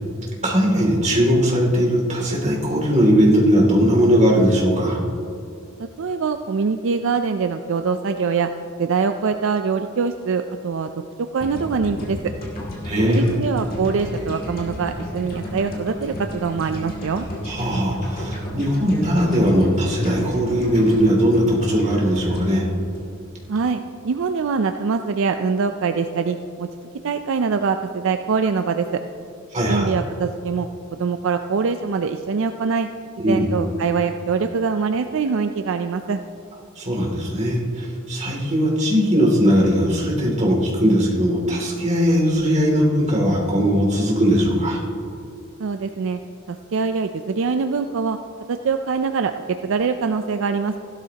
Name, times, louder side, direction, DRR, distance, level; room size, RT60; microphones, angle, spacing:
voice 1, 0.4-5.0 12.8-13.4 17.4-22.6 29.5-29.9 33.2-33.5 36.8-44.8, equal, 35° right, -3 dB, 2.6 m, -19 dB
voice 2, 6.0-8.5 8.8-10.9 11.3-12.2 13.0-17.3 23.5-26.7 27.0-29.0 29.7-32.9 33.3-36.2 45.6-46.2 46.5-48.2 48.5-50.8, right 5 dB, 65° right, 7 dB, 0.4 m, -23 dB
sound 1, 11.4-23.6, left 1 dB, 45° left, 2.4 m, -33 dB
16.0 x 12.0 x 2.9 m, 2.6 s
head